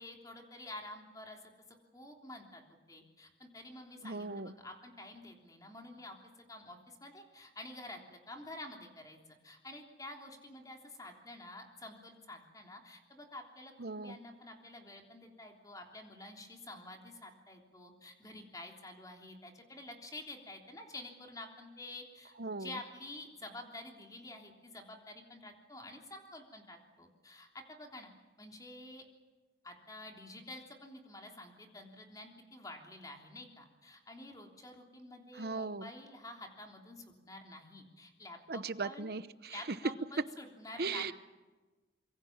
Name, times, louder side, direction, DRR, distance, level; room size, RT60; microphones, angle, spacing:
voice 1, 0.0-1.4 1.9-28.1 28.4-29.1 29.6-39.1 39.5-41.1, left 2 dB, 20° left, 2 dB, 3.3 m, -49 dB
voice 2, 4.0-4.5 13.8-14.2 22.4-22.7 35.4-35.9 38.5-39.6 40.8-41.1, right 4 dB, 60° right, 14 dB, 0.9 m, -38 dB
26.0 x 23.0 x 7.3 m, 1.2 s
head